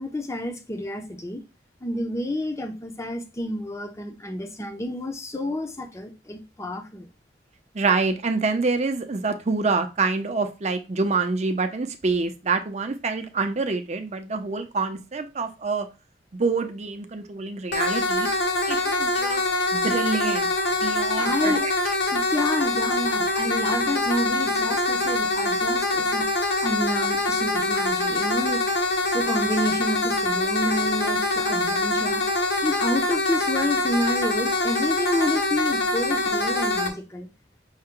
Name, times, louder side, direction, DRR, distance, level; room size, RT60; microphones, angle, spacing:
voice 1, 0.0-1.4 1.8-7.1 21.2-21.6 22.1-26.3 26.6-28.6 28.9-32.2 32.6-37.3, left 1 dB, 15° left, 0.6 m, -29 dB
voice 2, 7.7-15.9 16.3-18.3 18.7-19.4 19.7-20.5 20.8-21.6, right 4 dB, 40° right, 0.6 m, -26 dB
sound 1, 17.7-36.9, left 2 dB, 70° left, 1.0 m, -24 dB
5.5 x 2.2 x 3.6 m
head